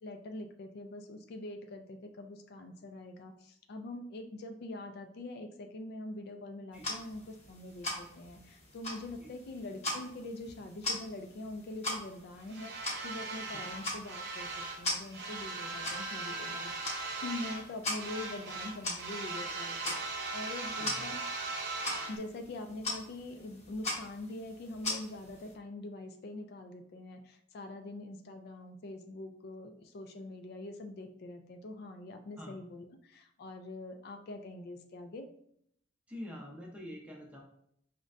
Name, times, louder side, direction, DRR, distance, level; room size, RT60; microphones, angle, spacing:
voice 1, 0.0-21.2 22.1-35.3, left 2 dB, 55° left, 5 dB, 0.3 m, -44 dB
sound 1, 6.7-25.5, left 1 dB, 35° left, 0.9 m, -41 dB
sound 2, 12.5-14.8 15.1-17.7 17.9-22.2, right 3 dB, 60° right, 0.7 m, -39 dB
voice 2, 20.4-21.0 32.4-32.5 36.1-37.4, left 1 dB, 5° right, -2 dB, 0.6 m, -46 dB
5.1 x 2.1 x 2.5 m, 0.69 s
head